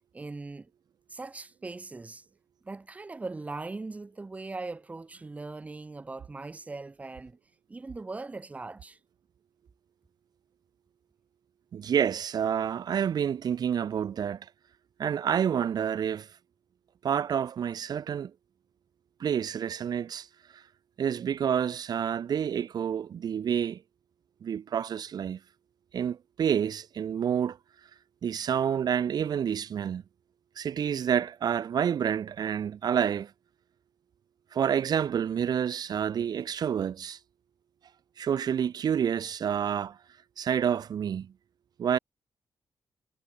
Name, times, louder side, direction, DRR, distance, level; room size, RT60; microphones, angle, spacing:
voice 1, 0.1-0.7 1.1-2.2 2.6-7.4 7.7-9.0, right 3 dB, 20° right, 1.9 m, -40 dB
voice 2, 11.7-14.5 15.0-16.4 17.0-18.3 19.2-20.3 20.5-20.6 21.0-23.8 24.4-25.4 25.9-27.6 28.2-30.0 30.5-33.3 34.5-37.2 38.2-40.0 40.4-41.3 41.8-42.0, right 8 dB, 60° right, 1.7 m, -28 dB
wide cardioid pair, 175°, 8 cm